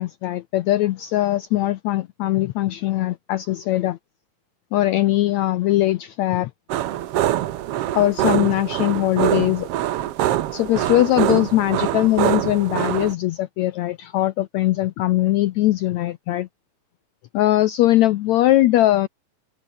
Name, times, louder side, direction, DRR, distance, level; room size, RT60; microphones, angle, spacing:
voice 1, 0.0-4.0 4.7-6.5 7.9-9.7 10.5-16.5 17.3-19.1, left 15 dB, 85° left, 1.6 m, -20 dB
sound 1, 6.7-13.1, right 13 dB, 80° right, 1.3 m, -24 dB
omnidirectional pair, 4.0 m